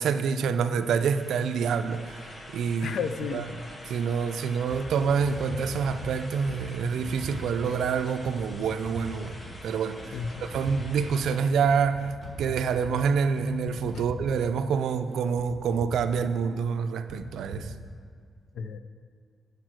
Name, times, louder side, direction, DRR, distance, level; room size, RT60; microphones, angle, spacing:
voice 1, 0.0-2.2 2.5-3.0 3.3-3.4 3.9-10.0 10.4-12.1 12.4-17.7, right 6 dB, 80° right, 10 dB, 0.4 m, -27 dB
sound 1, 0.7-11.6, left 1 dB, 20° left, 0.8 m, -46 dB
voice 2, 2.8-3.5 4.4-4.5 4.8-4.9 10.1-10.5 13.9-14.1 18.5-18.8, left 6 dB, 60° left, 10 dB, 0.4 m, -33 dB
sound 2, 4.7-4.8 5.2-5.3 5.9-6.0 6.4-6.6 7.0-7.1 7.6-7.8 8.2-8.3 8.8-8.9 9.4-9.5 10.0-10.1 10.5-10.7 11.0-11.2 11.6-11.7 12.2-12.3 12.8-12.9 13.4-13.5 13.9-14.0, right 1 dB, 10° right, 2.4 m, -43 dB
sound 3, 5.5-5.6 6.8-6.9 7.2-7.3 8.5-8.6 8.9-9.0 10.2-10.3 10.6-10.7 11.9-12.0 12.4-12.5 13.7-13.8 14.1-14.2 15.4-15.5 15.8-15.9 17.1-17.2 17.5-17.6, right 4 dB, 25° right, 2.5 m, -39 dB
10.5 x 5.1 x 6.2 m, 2.1 s
wide cardioid pair, 170°, 0 cm